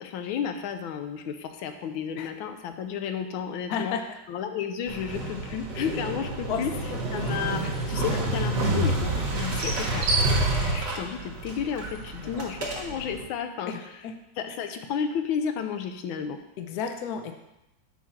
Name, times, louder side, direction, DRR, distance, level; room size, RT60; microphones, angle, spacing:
voice 1, 0.0-4.0 4.3-6.7 7.1-10.1 10.6-13.7 14.4-16.4, left 7 dB, 90° left, 7 dB, 1.5 m, -32 dB
voice 2, 3.7-4.0 6.5-6.6 8.1-8.2 12.2-12.3 12.9-13.0 13.7-14.1 16.6-17.3, left 7 dB, 60° left, 6 dB, 1.1 m, -32 dB
Motorcycle, 4.9-13.2, right 2 dB, 65° right, 2.1 m, -28 dB
7.1 x 4.8 x 5.8 m, 0.90 s
omnidirectional pair, 2.1 m